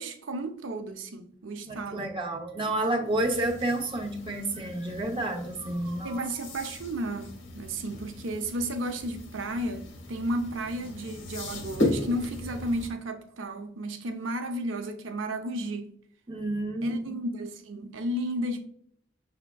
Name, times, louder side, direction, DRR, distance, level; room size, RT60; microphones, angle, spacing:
voice 1, 0.0-2.2 6.0-15.9 16.8-18.6, right 1 dB, 75° right, 0.6 m, -33 dB
voice 2, 1.6-6.2 16.3-17.1, right 1 dB, 25° right, 0.6 m, -30 dB
sound 1, 3.0-12.9, left 1 dB, 65° left, 1.0 m, -36 dB
5.7 x 3.4 x 2.2 m
head